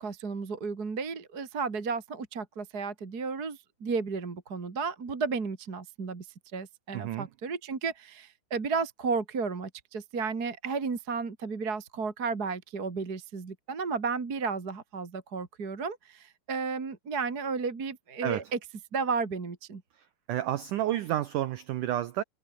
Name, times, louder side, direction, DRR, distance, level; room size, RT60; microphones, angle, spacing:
voice 1, 0.0-6.3 6.5-18.6 18.9-19.8, right 5 dB, 30° right, 2.2 m, -33 dB
voice 2, 6.9-7.3 18.2-18.4 20.3-22.2, right 13 dB, 85° right, 1.8 m, -30 dB
omnidirectional pair, 4.9 m